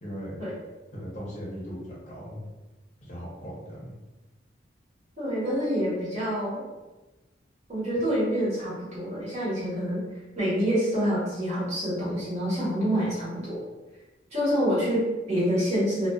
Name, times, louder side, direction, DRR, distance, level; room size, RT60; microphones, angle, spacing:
voice 1, 0.0-0.4 0.9-2.5 3.0-3.9, equal, 40° left, -6 dB, 0.7 m, -38 dB
voice 2, 5.2-6.6 7.7-10.0 10.3-13.6 14.3-16.1, equal, 40° right, -9 dB, 1.1 m, -27 dB
2.4 x 2.2 x 2.3 m, 1.1 s
head